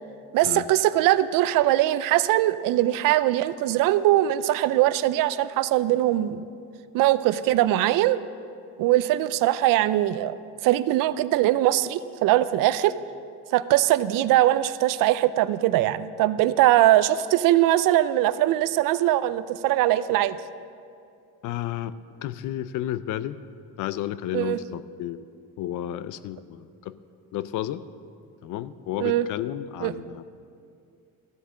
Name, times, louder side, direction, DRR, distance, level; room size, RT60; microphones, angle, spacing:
voice 1, 0.3-6.4 6.9-8.2 8.8-10.4 10.6-12.9 13.5-20.4 24.3-24.6 29.0-29.3 29.8-29.9, right 14 dB, 70° right, 15 dB, 0.5 m, -21 dB
voice 2, 21.4-21.9 22.2-23.4 23.8-25.2 25.6-27.0 27.3-27.8 28.4-30.2, left 12 dB, 65° left, 15 dB, 0.6 m, -32 dB
14.0 x 8.0 x 6.2 m, 2.4 s
cardioid pair, 95°, 34 cm